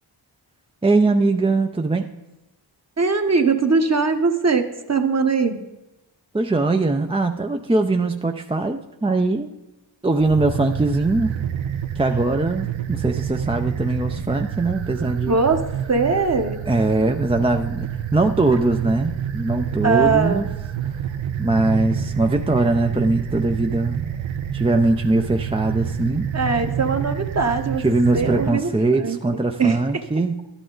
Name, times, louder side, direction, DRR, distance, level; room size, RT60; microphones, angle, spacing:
voice 1, 0.8-2.1 6.3-9.5 10.0-11.3 12.0-15.4 16.7-20.5 20.8-20.9 21.4-24.0 24.5-26.3 27.8-30.5, right 2 dB, 15° right, 4 dB, 0.5 m, -21 dB
voice 2, 3.0-5.6 15.3-15.6 15.9-16.6 19.8-20.4 26.3-27.8 28.1-28.7 29.0-29.2 29.6-29.8, right 4 dB, 35° right, 6 dB, 1.1 m, -20 dB
sound 1, 10.1-28.5, right 9 dB, 75° right, 0.7 m, -28 dB
12.0 x 10.0 x 3.9 m, 0.98 s
cardioid pair, 55°, 47 cm